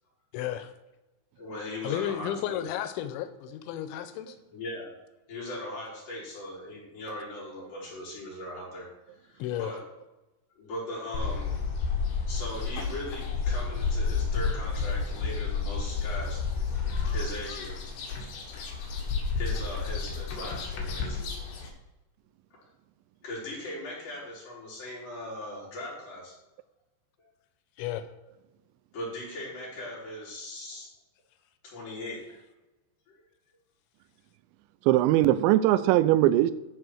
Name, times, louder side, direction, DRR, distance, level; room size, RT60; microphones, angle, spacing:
voice 1, 0.3-0.7 1.8-4.4 9.4-9.7 27.8-28.0, left 11 dB, 90° left, 3.1 m, -33 dB
voice 2, 1.4-2.7 4.5-4.9 5.3-8.9 9.2-9.8 10.6-11.6 12.3-16.4 17.1-17.8 19.4-21.5 23.2-26.3 28.9-30.9 31.6-32.4, left 1 dB, 50° left, 5.8 m, -39 dB
sound 1, 11.1-21.7, left 5 dB, 70° left, 3.8 m, -31 dB
voice 3, 34.9-36.5, right 14 dB, 85° right, 2.9 m, -20 dB
14.0 x 4.9 x 6.4 m
omnidirectional pair, 5.2 m